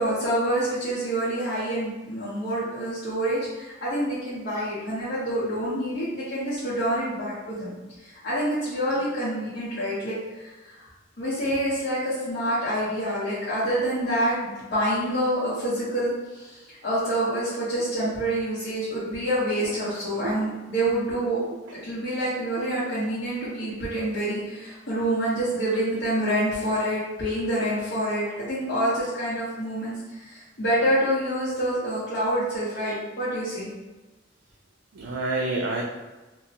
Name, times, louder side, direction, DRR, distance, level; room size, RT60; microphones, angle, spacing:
voice 1, 0.0-7.7 8.2-10.5 11.2-21.4 21.7-33.7, right 1 dB, 65° left, -10 dB, 0.7 m, -27 dB
voice 2, 34.9-35.8, right 2 dB, 85° right, -2 dB, 0.3 m, -29 dB
3.0 x 2.0 x 2.7 m, 1.2 s
head